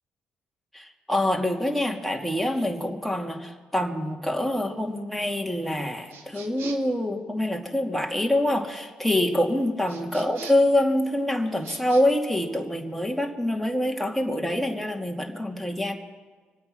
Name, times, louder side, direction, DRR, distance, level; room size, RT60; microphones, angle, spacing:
voice 1, 0.7-16.0, left 1 dB, ahead, 1 dB, 2.5 m, -25 dB
sound 1, 6.1-7.0 9.9-10.8 11.6-12.0, right 5 dB, 70° right, 1.6 m, -43 dB
25.0 x 8.5 x 6.1 m, 1.5 s
hypercardioid pair, 55°, 4 cm